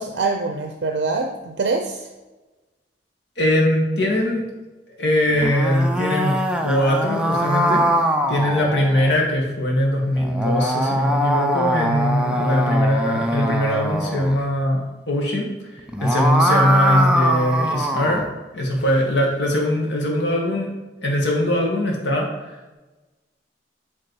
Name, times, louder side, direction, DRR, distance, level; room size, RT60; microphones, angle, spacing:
voice 1, 0.0-2.1, right 3 dB, 70° right, 4 dB, 0.5 m, -24 dB
voice 2, 3.4-4.4 5.0-7.8 8.3-18.2 18.5-20.7 21.0-22.7, left 1 dB, 75° left, -1 dB, 1.6 m, -21 dB
sound 1, 5.3-9.2 10.2-14.4 15.8-18.3, equal, 5° right, 0.5 m, -22 dB
8.0 x 3.5 x 4.6 m, 1.2 s
head